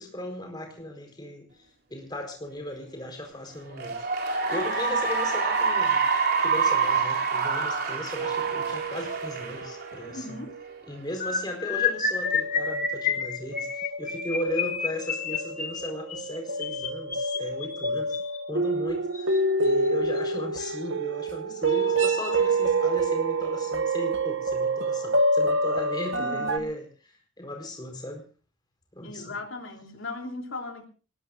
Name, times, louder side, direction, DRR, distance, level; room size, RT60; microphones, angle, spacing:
voice 1, 0.0-1.5 1.9-4.0 4.5-6.0 6.4-10.4 10.9-18.2 18.5-28.2 28.9-29.3, left 1 dB, 20° left, 4 dB, 4.5 m, -36 dB
Cheering / Applause, 3.6-10.3, right 5 dB, 50° right, 3.8 m, -26 dB
sound 1, 8.2-9.9 10.5-10.6 11.7-26.6, right 2 dB, 70° right, 1.3 m, -28 dB
voice 2, 10.0-10.6 26.1-26.6 29.0-30.8, left 2 dB, 75° left, 3 dB, 3.4 m, -38 dB
sound 2, 11.2-18.4 19.1-19.4 19.6-19.9 20.2-20.4, left 6 dB, 40° left, 2.1 m, -30 dB
26.0 x 19.5 x 2.6 m, 0.36 s
head